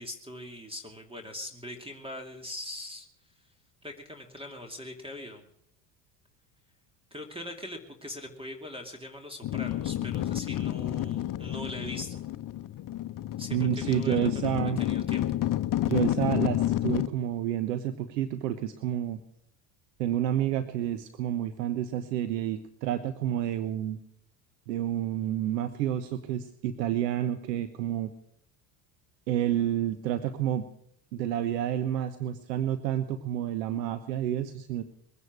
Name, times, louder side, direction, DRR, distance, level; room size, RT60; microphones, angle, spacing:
voice 1, 0.0-3.1 3.8-5.4 7.1-12.2 13.4-15.2, left 1 dB, 10° right, 5 dB, 2.6 m, -41 dB
sound 1, 9.4-17.1, left 13 dB, 40° left, 0.9 m, -30 dB
voice 2, 13.5-14.8 15.9-19.2 20.0-24.0 24.7-28.1 29.3-30.6 31.1-34.8, right 11 dB, 85° right, 11 dB, 1.2 m, -29 dB
22.0 x 9.7 x 6.2 m, 0.73 s
supercardioid pair, 85°, 48 cm